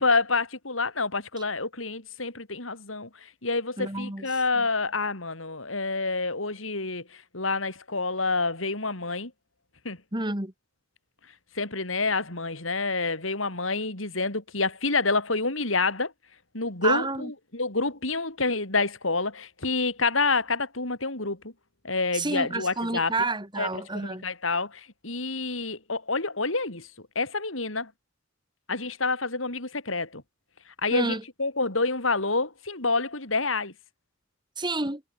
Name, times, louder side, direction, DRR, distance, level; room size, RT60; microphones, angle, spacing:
voice 1, 0.0-9.3 9.8-10.0 11.6-16.1 16.5-21.5 21.8-23.1 23.6-23.7 23.9-26.9 27.2-27.9 28.7-30.2 30.8-33.7, left 3 dB, 80° left, 5.5 m, -28 dB
voice 2, 3.8-4.3 4.5-4.7 10.1-10.5 16.8-17.3 22.1-24.2 30.9-31.2 34.6-35.0, right 2 dB, 20° right, 3.1 m, -29 dB
head